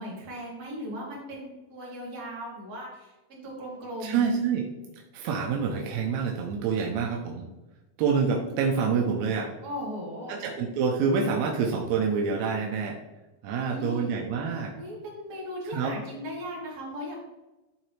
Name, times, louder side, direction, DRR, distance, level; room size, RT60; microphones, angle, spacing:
voice 1, 0.0-4.2 9.6-10.4 13.6-14.1 14.7-17.2, equal, 55° right, -6 dB, 3.7 m, -37 dB
voice 2, 4.0-4.6 5.1-7.5 8.0-9.5 10.3-13.0 13.4-14.7 15.7-15.9, right 5 dB, 75° right, 1 dB, 1.8 m, -27 dB
10.5 x 3.9 x 3.2 m, 1.1 s
omnidirectional pair, 3.8 m